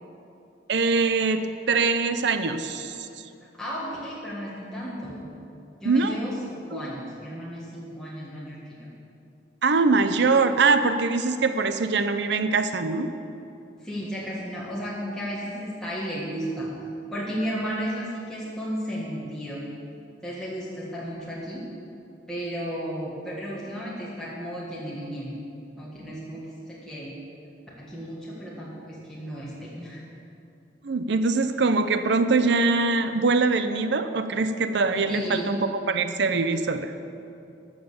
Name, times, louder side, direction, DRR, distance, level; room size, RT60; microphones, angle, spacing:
voice 1, 0.7-3.1 5.8-6.2 6.7-6.8 9.6-13.1 30.8-36.9, right 4 dB, 65° right, 9 dB, 0.6 m, -23 dB
voice 2, 3.5-5.2 5.8-8.9 13.8-16.7 17.1-19.6 20.2-21.6 22.3-25.3 25.8-27.2 27.8-30.0 35.1-35.5, equal, 5° left, -8 dB, 1.7 m, -34 dB
14.5 x 6.6 x 6.9 m, 2.7 s
head